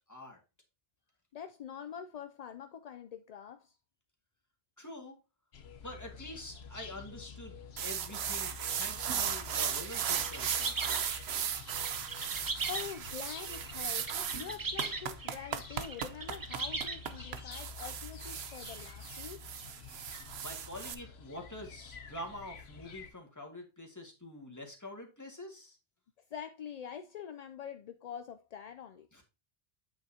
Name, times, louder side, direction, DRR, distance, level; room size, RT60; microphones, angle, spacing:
voice 1, 0.1-0.4 4.8-5.1 5.8-7.5 7.8-11.0 20.4-25.8 29.1-29.2, left 1 dB, 15° left, 1.8 m, -46 dB
voice 2, 1.3-3.8 12.7-19.4 26.3-29.1, left 8 dB, 55° left, 0.5 m, -45 dB
sound 1, 5.5-23.1, left 6 dB, 85° left, 1.1 m, -49 dB
sound 2, 7.8-20.9, right 8 dB, 90° right, 1.0 m, -36 dB
sound 3, 9.5-17.4, right 4 dB, 25° right, 0.5 m, -39 dB
8.2 x 6.6 x 2.8 m
omnidirectional pair, 1.0 m